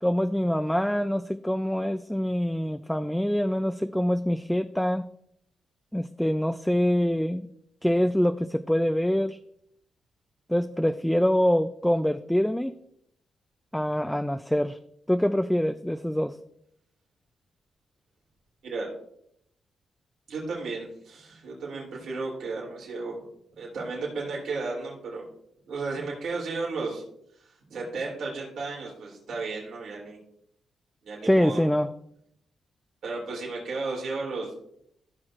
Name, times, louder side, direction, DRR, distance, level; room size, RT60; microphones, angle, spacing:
voice 1, 0.0-5.0 5.9-7.5 7.8-9.4 10.5-12.7 13.7-14.8 15.1-16.4 31.2-31.9, equal, 5° left, 9 dB, 0.4 m, -25 dB
voice 2, 20.3-23.2 23.5-25.2 25.7-27.0 27.4-30.2 31.0-31.6 33.0-34.5, right 3 dB, 75° right, -3 dB, 3.2 m, -34 dB
15.0 x 6.2 x 2.5 m, 0.72 s
cardioid pair, 75°, 0 cm